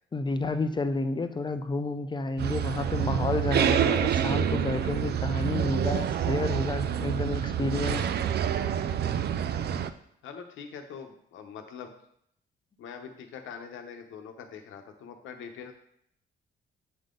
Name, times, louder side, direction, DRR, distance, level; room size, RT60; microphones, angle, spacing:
voice 1, 0.1-8.1, left 3 dB, 20° left, 10 dB, 0.5 m, -30 dB
sound 1, 2.4-9.9, right 9 dB, 55° right, 0.4 m, -27 dB
voice 2, 10.2-11.9 12.8-15.7, left 6 dB, 80° left, 5 dB, 1.0 m, -43 dB
7.7 x 3.7 x 3.8 m, 0.70 s
cardioid pair, 90°, 20 cm